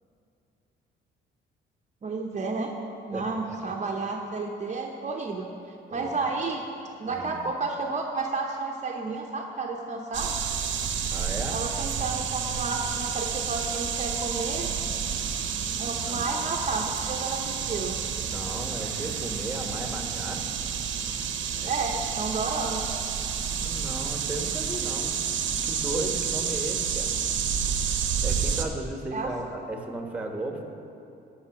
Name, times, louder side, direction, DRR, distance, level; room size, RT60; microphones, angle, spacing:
voice 1, 2.0-2.7 3.1-6.7 7.0-10.4 11.5-14.7 15.8-18.0 21.6-22.8 29.1-29.3, right 3 dB, 35° right, 1 dB, 0.8 m, -31 dB
voice 2, 3.1-3.6 5.9-6.1 7.1-7.4 11.1-11.6 16.0-16.3 18.2-20.4 21.6-22.1 23.6-25.2 25.6-27.1 28.2-30.6, right 2 dB, 5° right, 3 dB, 1.3 m, -35 dB
sound 1, 10.1-28.6, right 7 dB, 70° right, 0.8 m, -30 dB
12.5 x 5.7 x 5.9 m, 2.8 s
cardioid pair, 90°, 20 cm